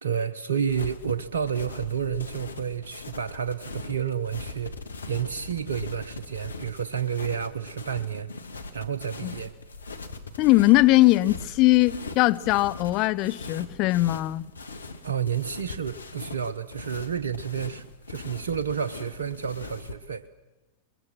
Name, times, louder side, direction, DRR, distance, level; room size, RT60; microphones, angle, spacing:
voice 1, 0.0-4.7 5.1-8.3 8.7-9.5 15.0-20.3, right 7 dB, 75° right, 1.0 m, -30 dB
sound 1, 0.7-19.9, left 3 dB, 85° left, 1.8 m, -41 dB
voice 2, 10.4-14.5, left 19 dB, 45° left, 0.9 m, -20 dB
25.0 x 21.5 x 7.4 m
hypercardioid pair, 100°, 0 cm